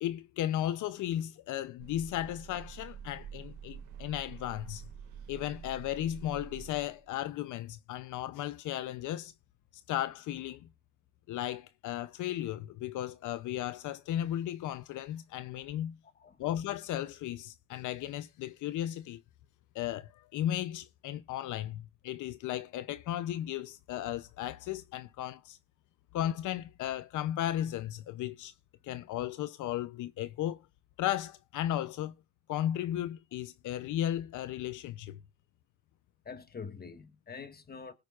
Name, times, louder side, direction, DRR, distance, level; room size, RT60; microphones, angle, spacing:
voice 1, 0.0-4.8 5.3-9.3 9.9-10.7 11.3-16.0 16.4-19.2 19.7-25.6 26.1-28.5 28.8-30.6 31.0-32.1 32.5-35.2, left 12 dB, 80° left, 0.7 m, -35 dB
sound 1, 1.8-7.1, right 7 dB, 80° right, 2.0 m, -47 dB
voice 2, 36.3-37.9, left 5 dB, 30° left, 1.6 m, -45 dB
20.0 x 8.8 x 2.4 m
cardioid pair, 90°, 30 cm